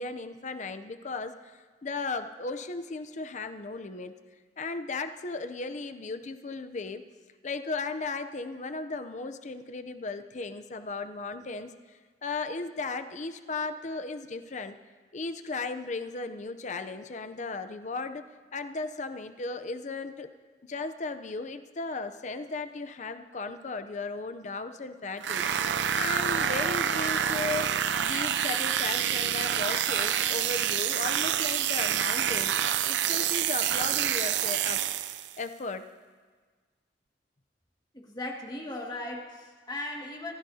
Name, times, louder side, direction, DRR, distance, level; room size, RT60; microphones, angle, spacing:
voice 1, 0.0-1.5 1.8-4.2 4.6-7.0 7.4-11.7 12.2-14.8 15.1-18.2 18.5-20.3 20.6-25.5 25.9-27.7 28.0-32.6 32.9-34.8 35.4-35.9, left 3 dB, 45° left, 9 dB, 0.6 m, -36 dB
sound 1, 25.2-35.4, right 9 dB, 90° right, 0.5 m, -27 dB
voice 2, 37.9-40.3, left 1 dB, 25° left, 0 dB, 2.0 m, -37 dB
26.5 x 15.0 x 2.8 m, 1.5 s
head